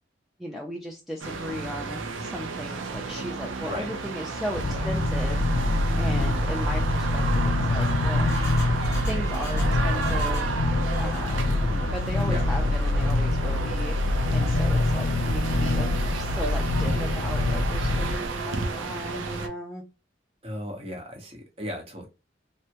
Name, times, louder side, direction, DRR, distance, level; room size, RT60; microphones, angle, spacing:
voice 1, 0.4-5.4 6.0-8.3 9.0-10.6 11.0-11.6 11.9-13.9 14.3-19.8, equal, ahead, 0.3 m, -36 dB
sound 1, 1.2-19.5, right 4 dB, 90° right, 0.6 m, -32 dB
voice 2, 3.6-4.0 4.7-4.9 11.6-11.9 12.2-12.8 20.4-22.1, equal, 30° right, 0.8 m, -36 dB
sound 2, 4.5-18.2, left 2 dB, 90° left, 0.4 m, -25 dB
Engine, 7.8-10.5 10.8-11.4 11.8-12.4 12.8-12.9, left 2 dB, 15° left, 0.9 m, -45 dB
3.3 x 2.1 x 2.8 m
head